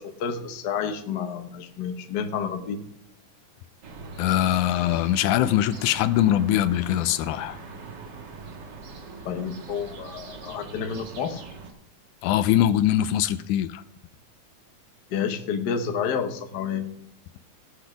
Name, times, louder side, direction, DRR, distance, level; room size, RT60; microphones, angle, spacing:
voice 1, 0.0-2.8 9.2-11.4 15.1-16.9, left 7 dB, 65° left, 6 dB, 1.0 m, -30 dB
sound 1, 3.8-11.7, right 4 dB, 50° right, 1.4 m, -42 dB
voice 2, 4.2-7.6 12.2-13.8, left 12 dB, 85° left, 12 dB, 2.1 m, -22 dB
18.0 x 6.0 x 5.0 m, 0.72 s
omnidirectional pair, 3.4 m